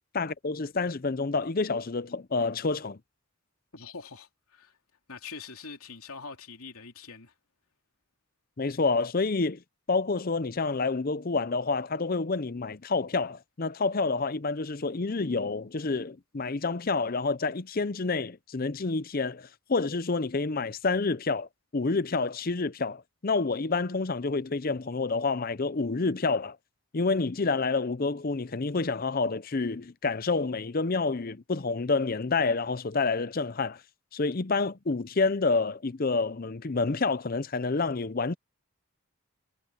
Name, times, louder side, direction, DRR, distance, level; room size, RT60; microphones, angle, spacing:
voice 1, 0.1-3.0 8.6-9.6 9.9-21.5 21.7-26.6 26.9-33.8 34.1-38.3, left 3 dB, 40° left, 0.6 m, -28 dB
voice 2, 3.7-4.8 5.1-7.3, left 4 dB, 80° left, 3.0 m, -44 dB
head